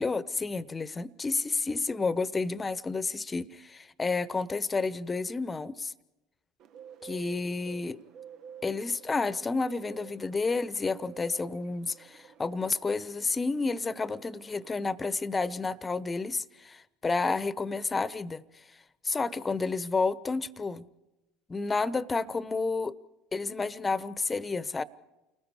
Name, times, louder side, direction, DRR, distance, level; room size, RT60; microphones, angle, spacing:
voice 1, 0.0-5.9 7.0-8.0 8.6-18.4 19.0-20.8 21.5-22.9 23.3-24.8, left 4 dB, 20° left, 1.1 m, -30 dB
Bird, 6.6-14.9, right 8 dB, 55° right, 1.0 m, -51 dB
29.5 x 20.0 x 4.9 m
hypercardioid pair, 80°, 0 cm